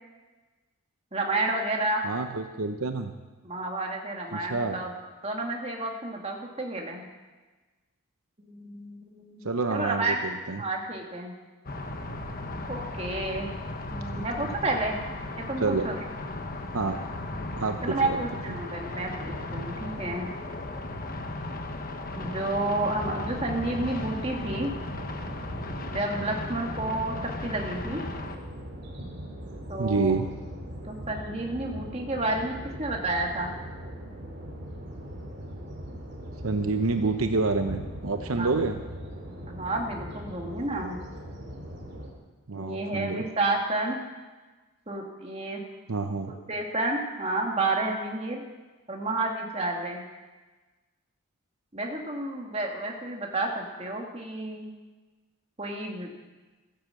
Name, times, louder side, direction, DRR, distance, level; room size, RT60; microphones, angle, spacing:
voice 1, 1.1-2.1 3.4-4.9 5.2-7.1 8.4-9.4 9.7-10.2 10.6-11.3 12.7-13.5 13.9-15.0 15.4-16.0 17.8-20.3 22.2-24.7 25.9-28.0 29.7-30.2 30.8-33.6 38.4-38.5 39.5-41.0 42.6-44.0 44.9-45.6 46.5-48.4 48.9-50.0 51.7-54.7 55.6-56.1, right 2 dB, 25° right, 1 dB, 2.0 m, -30 dB
voice 2, 2.0-3.1 4.3-4.8 9.4-10.1 10.5-10.6 14.1-14.2 15.6-15.9 16.7-17.0 17.6-18.2 29.8-30.3 36.4-38.8 42.5-43.3 45.9-46.3, right 3 dB, 70° right, 6 dB, 0.8 m, -27 dB
sound 1, 11.7-28.4, left 2 dB, 40° left, 1.2 m, -36 dB
sound 2, 23.0-42.1, equal, 45° right, 3.1 m, -40 dB
14.5 x 10.5 x 7.6 m, 1.3 s
head